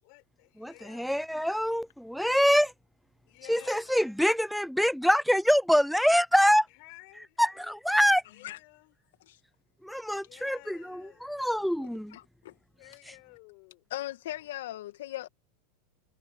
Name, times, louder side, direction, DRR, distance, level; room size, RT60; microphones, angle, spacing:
voice 1, 0.0-1.1 3.3-4.1 6.7-8.9 10.1-11.3 12.8-13.9, left 34 dB, 60° left, 5.6 m, -54 dB
voice 2, 0.6-2.7 3.5-6.7 7.4-8.2 9.8-12.2, equal, ahead, 0.5 m, -25 dB
voice 3, 12.1-12.6 13.9-15.3, left 14 dB, 75° left, 2.2 m, -38 dB
hypercardioid pair, 105°, 0 cm